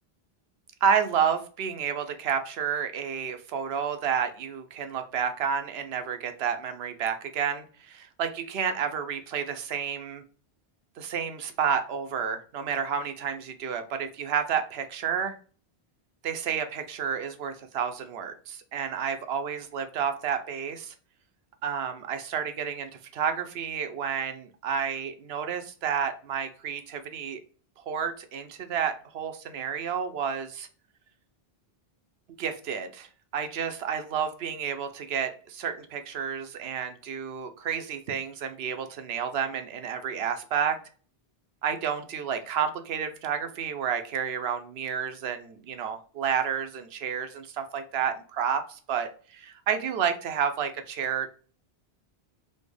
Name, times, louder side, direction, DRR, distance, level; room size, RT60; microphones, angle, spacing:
voice 1, 0.8-10.2 11.0-15.3 16.2-20.9 21.6-27.4 27.9-30.7 32.4-33.1 33.3-40.8 41.6-51.3, right 7 dB, 80° right, 8 dB, 0.9 m, -30 dB
4.3 x 2.8 x 3.3 m, 0.40 s
omnidirectional pair, 1.0 m